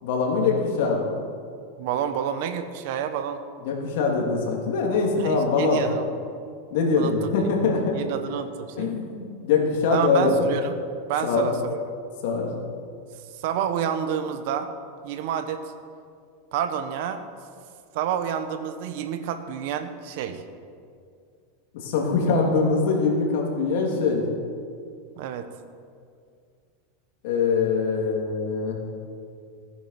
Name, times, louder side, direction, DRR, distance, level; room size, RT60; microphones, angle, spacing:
voice 1, 0.0-1.1 3.6-5.8 6.7-8.0 8.8-10.3 11.2-11.5 12.2-12.5 21.7-24.2 27.2-28.8, left 4 dB, 65° left, -1 dB, 3.2 m, -23 dB
voice 2, 1.8-3.4 5.2-6.1 6.9-7.1 7.9-9.0 9.9-10.8 11.1-11.8 13.4-14.7 15.0-15.6 16.5-17.2 17.9-20.4 25.2-25.5, right 8 dB, 60° right, 9 dB, 1.1 m, -29 dB
17.0 x 10.0 x 6.0 m, 2.3 s
supercardioid pair, 150°, 0 cm